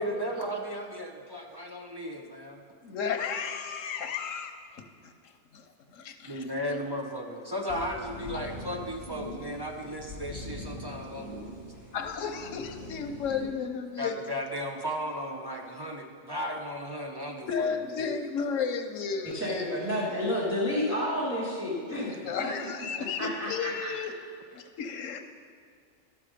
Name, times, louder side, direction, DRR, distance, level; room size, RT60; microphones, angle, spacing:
voice 1, 0.0-2.6 6.2-11.4 14.0-18.2, equal, 25° right, 1 dB, 0.5 m, -35 dB
voice 2, 2.8-5.1 5.5-6.4 11.9-14.1 17.5-19.7 22.1-24.1 24.5-25.2, left 6 dB, 90° left, 6 dB, 1.2 m, -33 dB
sound 1, 7.7-13.4, left 1 dB, 50° right, 2.8 m, -42 dB
voice 3, 19.3-22.5 23.2-23.9, left 1 dB, 10° right, -8 dB, 1.8 m, -30 dB
12.0 x 6.7 x 5.0 m, 2.2 s
omnidirectional pair, 1.3 m